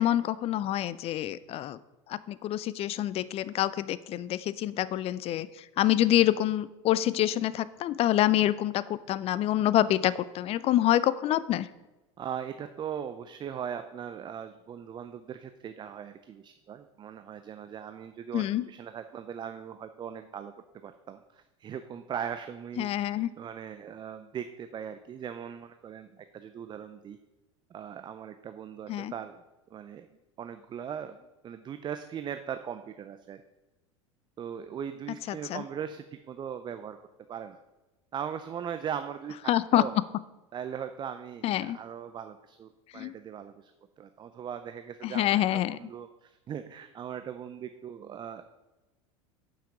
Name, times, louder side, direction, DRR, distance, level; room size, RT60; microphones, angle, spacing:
voice 1, 0.0-1.8 2.1-11.7 18.3-18.7 22.8-23.3 28.9-29.1 35.3-35.6 39.5-39.9 41.4-41.8 42.9-43.1 45.0-45.8, left 13 dB, 40° left, 17 dB, 0.4 m, -27 dB
voice 2, 12.2-27.2 27.7-29.4 29.7-30.1 30.4-31.2 31.4-33.4 34.4-37.0 37.3-37.6 38.1-40.0 40.5-43.7 44.0-48.4, right 8 dB, 30° right, 9 dB, 0.5 m, -39 dB
7.3 x 5.8 x 5.0 m, 1.1 s
hypercardioid pair, 85°, 16 cm